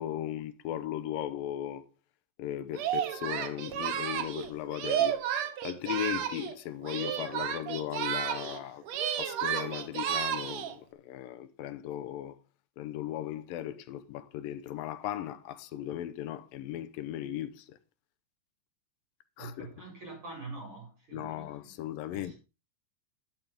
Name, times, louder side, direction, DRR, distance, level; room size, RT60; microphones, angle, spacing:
voice 1, 0.0-1.9 2.4-5.2 5.6-8.8 9.2-12.4 12.8-17.8 19.4-19.7 21.1-22.3, left 12 dB, 85° left, 2.7 m, -37 dB
Singing, 2.7-6.6 6.8-8.6 8.9-10.8, right 9 dB, 60° right, 2.0 m, -32 dB
voice 2, 19.4-21.7 22.1-22.3, right 3 dB, 35° right, 8.5 m, -45 dB
12.0 x 12.0 x 3.6 m
omnidirectional pair, 4.0 m